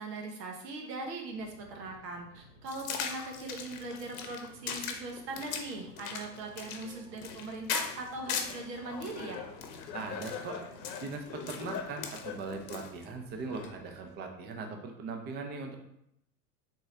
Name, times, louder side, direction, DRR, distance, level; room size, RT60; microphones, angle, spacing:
voice 1, 0.0-9.4, right 2 dB, 75° right, 2 dB, 1.2 m, -40 dB
sound 1, 1.3-14.0, right 2 dB, 40° right, 1.3 m, -56 dB
sound 2, 2.7-8.6 9.0-13.0, left 7 dB, 55° left, 0.8 m, -39 dB
Laughter, 8.3-14.1, left 7 dB, 85° left, 0.8 m, -44 dB
voice 2, 9.9-10.6 11.0-15.8, right 4 dB, 20° right, 4 dB, 0.5 m, -40 dB
3.8 x 3.8 x 3.2 m, 0.77 s
hypercardioid pair, 110°, 50 cm